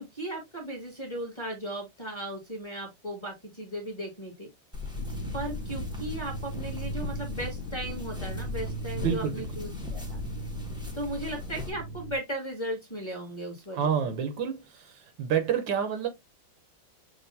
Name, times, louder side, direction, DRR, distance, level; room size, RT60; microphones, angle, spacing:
voice 1, 0.0-4.5 5.3-10.2 10.9-13.9, right 1 dB, 15° left, 1.4 m, -36 dB
sound 1, 4.7-11.7, left 3 dB, 5° right, 0.7 m, -40 dB
sound 2, 4.9-12.2, right 1 dB, 80° left, 1.8 m, -37 dB
voice 2, 9.0-9.5 13.7-16.1, right 8 dB, 75° right, 1.5 m, -28 dB
6.6 x 2.6 x 2.6 m
omnidirectional pair, 2.1 m